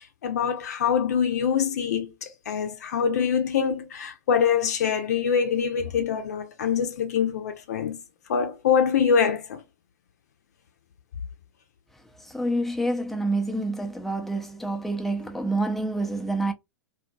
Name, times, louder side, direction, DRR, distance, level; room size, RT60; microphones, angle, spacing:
voice 1, 0.2-8.0 8.3-9.6, left 7 dB, 65° left, 0.7 m, -24 dB
voice 2, 12.3-16.5, right 2 dB, ahead, 0.6 m, -27 dB
2.8 x 2.5 x 2.3 m
figure-of-eight pair, 95°, 10 cm